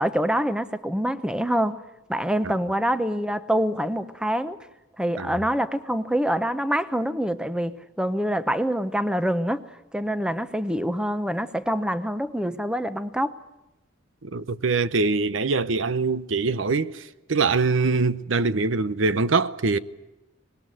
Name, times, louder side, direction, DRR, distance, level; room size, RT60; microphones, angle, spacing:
voice 1, 0.0-1.8 2.1-4.6 5.0-9.6 9.9-13.3, equal, 5° right, 0.8 m, -25 dB
voice 2, 14.2-17.0 17.3-19.8, right 4 dB, 75° right, 0.8 m, -23 dB
25.0 x 20.0 x 9.1 m
head